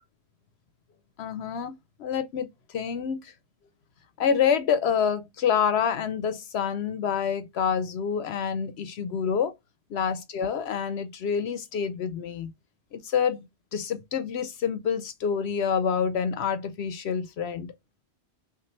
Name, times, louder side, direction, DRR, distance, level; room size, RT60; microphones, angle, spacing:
voice 1, 1.2-1.7 2.0-3.3 4.2-9.5 9.9-12.5 12.9-17.7, left 7 dB, 75° left, 0.9 m, -27 dB
5.9 x 2.5 x 3.0 m
omnidirectional pair, 1.1 m